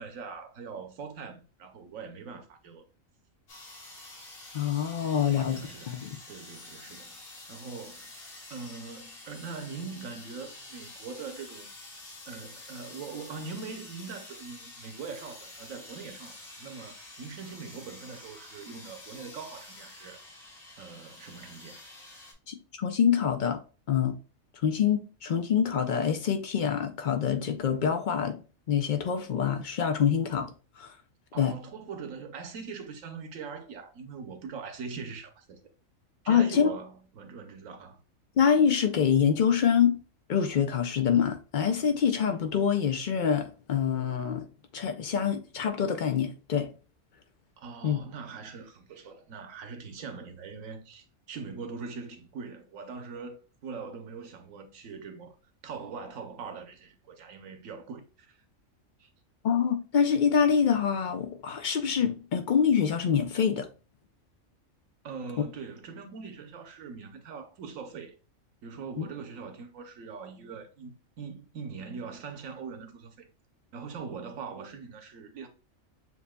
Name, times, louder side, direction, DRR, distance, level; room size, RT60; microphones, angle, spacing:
voice 1, 0.0-2.8 5.2-6.0 6.3-8.1 8.5-11.7 12.3-20.2 20.8-21.9 31.3-35.6 36.2-38.0 47.6-55.4 55.6-58.4 59.0-59.1 65.0-68.2 68.6-73.3 73.7-75.5, right 5 dB, 75° right, 1.2 m, -42 dB
sound 1, 3.5-22.3, left 2 dB, 90° left, 1.6 m, -48 dB
voice 2, 4.5-5.6 5.9-6.2 22.5-23.6 23.9-24.2 24.6-28.4 28.7-30.5 30.8-30.9 31.4-31.5 36.3-36.7 38.4-40.0 40.3-44.5 44.7-46.7 47.8-48.0 59.4-63.7 69.0-69.1, left 7 dB, 65° left, 0.4 m, -25 dB
7.2 x 2.6 x 2.2 m
omnidirectional pair, 1.4 m